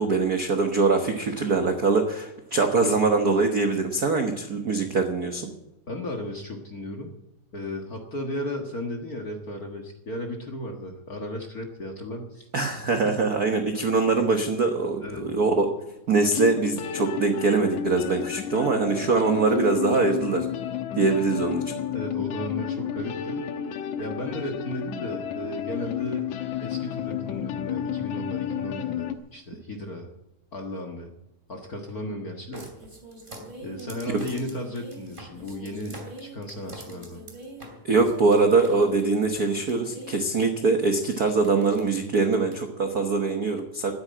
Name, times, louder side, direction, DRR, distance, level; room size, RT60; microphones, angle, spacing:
voice 1, 0.0-5.5 12.5-20.5 20.9-21.7 33.8-34.2 37.8-43.9, right 3 dB, 60° right, 5 dB, 1.0 m, -23 dB
voice 2, 5.9-7.1 7.5-12.5 13.0-13.1 15.0-15.2 21.9-23.5 24.0-26.3 26.6-30.1 30.5-31.1 31.5-32.7 33.6-37.2, left 1 dB, 40° left, 2 dB, 1.4 m, -35 dB
sound 1, 15.8-15.9 16.4-29.2, left 9 dB, 80° left, 2.4 m, -31 dB
sound 2, 32.5-40.4 41.1-41.2 41.4-41.8 42.5-42.6, right 1 dB, 15° right, 2.7 m, -43 dB
12.5 x 9.7 x 8.6 m, 0.93 s
omnidirectional pair, 3.4 m